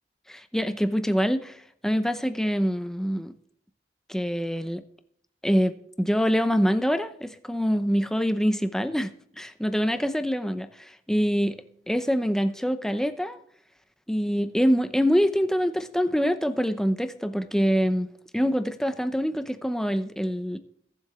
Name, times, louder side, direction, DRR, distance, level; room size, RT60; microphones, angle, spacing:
voice 1, 0.3-3.3 4.1-4.8 5.4-11.6 11.9-13.4 14.1-18.1 18.3-20.6, equal, 5° left, 10 dB, 0.7 m, -25 dB
21.5 x 7.4 x 3.7 m, 0.66 s
head